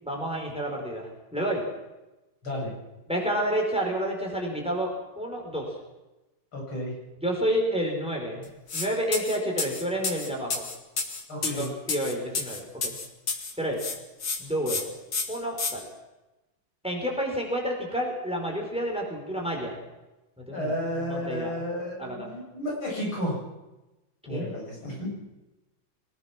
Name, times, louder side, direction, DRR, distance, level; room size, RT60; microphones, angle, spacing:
voice 1, 0.0-1.6 3.1-4.9 5.2-5.8 7.2-10.6 11.4-12.9 13.6-13.8 14.4-14.8 15.3-15.8 16.8-19.8 20.4-20.7 21.0-21.5 22.0-22.3 24.3-24.5, equal, 5° right, 1 dB, 5.1 m, -29 dB
voice 2, 6.5-6.9 11.3-11.7 20.5-23.4 24.3-25.2, equal, 85° left, -3 dB, 8.6 m, -32 dB
sound 1, 8.7-8.9 9.1-13.5 13.8-14.4 14.7-14.8 15.1-15.7, left 4 dB, 60° left, 2.8 m, -30 dB
24.5 x 20.0 x 6.2 m, 1.0 s
omnidirectional pair, 2.2 m